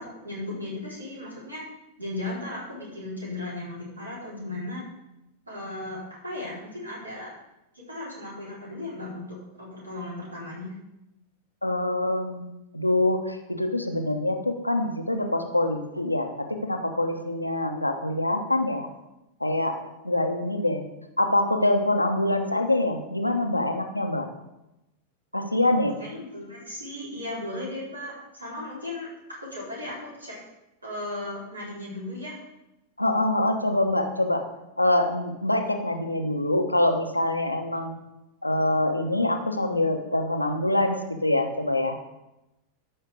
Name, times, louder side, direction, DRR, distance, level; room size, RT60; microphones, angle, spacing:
voice 1, 0.0-1.6 2.0-4.8 5.5-7.3 7.9-10.7 26.0-29.1 29.5-30.4 30.8-32.4, left 2 dB, 80° right, -5 dB, 4.2 m, -36 dB
voice 2, 11.6-12.5 12.7-18.9 19.4-19.8 20.0-20.8 21.2-24.3 25.3-26.0 33.0-34.5 34.8-38.0 38.4-42.0, left 1 dB, 85° left, 5 dB, 1.1 m, -25 dB
13.5 x 5.7 x 5.1 m, 0.92 s
figure-of-eight pair, 90°, 0 cm